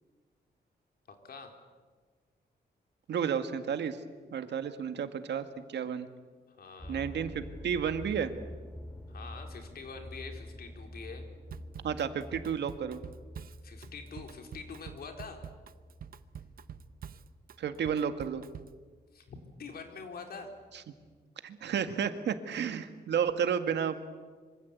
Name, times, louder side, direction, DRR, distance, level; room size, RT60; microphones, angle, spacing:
voice 1, 1.1-1.5 6.6-7.1 9.1-11.3 13.6-15.4 19.1-20.5, left 5 dB, 60° left, 4 dB, 4.1 m, -45 dB
voice 2, 3.1-4.0 4.3-6.1 6.9-8.3 11.8-13.0 17.6-18.4 21.4-24.1, right 7 dB, 85° right, 8 dB, 1.9 m, -32 dB
sound 1, 6.8-19.1 19.6-20.0 20.6-20.7 21.0-21.1, left 1 dB, 10° left, 2.1 m, -47 dB
Drum kit / Drum, 11.5-18.8, right 8 dB, 55° right, 0.8 m, -47 dB
25.5 x 25.0 x 8.4 m, 1.5 s
wide cardioid pair, 165°, 18 cm